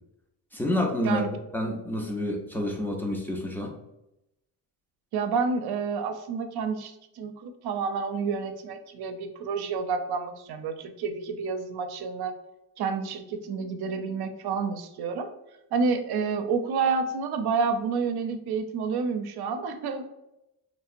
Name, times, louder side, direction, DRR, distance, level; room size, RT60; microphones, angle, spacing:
voice 1, 0.5-3.8, left 1 dB, 5° left, 0 dB, 0.3 m, -29 dB
voice 2, 5.1-12.3 12.8-15.3 15.7-20.1, right 5 dB, 50° right, 7 dB, 0.5 m, -29 dB
2.8 x 2.0 x 2.4 m, 0.88 s
supercardioid pair, 65°, 49 cm